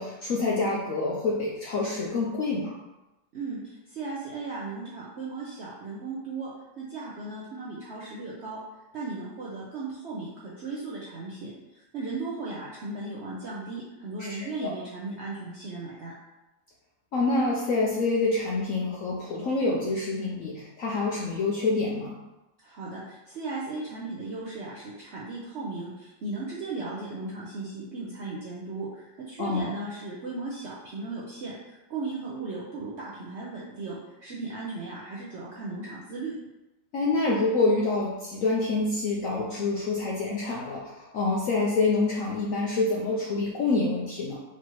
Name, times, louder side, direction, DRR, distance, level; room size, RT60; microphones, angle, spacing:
voice 1, 0.0-2.7 14.3-14.7 17.1-22.1 29.4-29.7 36.9-44.4, left 3 dB, 70° left, -4 dB, 0.7 m, -27 dB
voice 2, 3.3-8.6 8.9-16.1 22.6-36.3, right 3 dB, 75° right, -6 dB, 0.6 m, -36 dB
4.7 x 2.9 x 3.0 m, 1.0 s
omnidirectional pair, 2.0 m